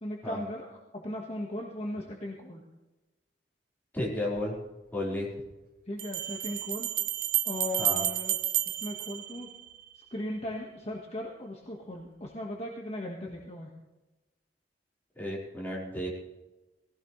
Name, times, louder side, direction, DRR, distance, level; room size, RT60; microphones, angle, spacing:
voice 1, 0.0-2.6 5.9-6.9 7.4-8.4 8.7-9.5 10.1-13.7, left 1 dB, 35° left, -1 dB, 1.6 m, -37 dB
voice 2, 3.9-4.5 4.9-5.3 7.8-8.0 15.1-16.1, left 1 dB, 10° left, -5 dB, 4.6 m, -33 dB
sound 1, 4.4-4.5 6.0-10.0, right 12 dB, 55° right, 0.6 m, -31 dB
20.0 x 16.0 x 3.3 m, 1.1 s
head